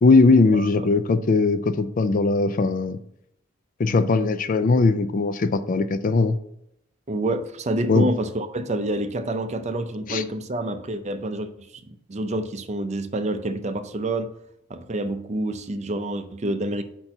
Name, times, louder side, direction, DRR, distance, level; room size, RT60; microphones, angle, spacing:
voice 1, 0.0-3.0 3.8-6.4 7.9-8.1 10.1-10.2, left 3 dB, 40° left, 0.4 m, -19 dB
voice 2, 7.1-14.3 14.7-16.8, right 1 dB, 35° right, 0.5 m, -28 dB
5.3 x 4.4 x 5.8 m
head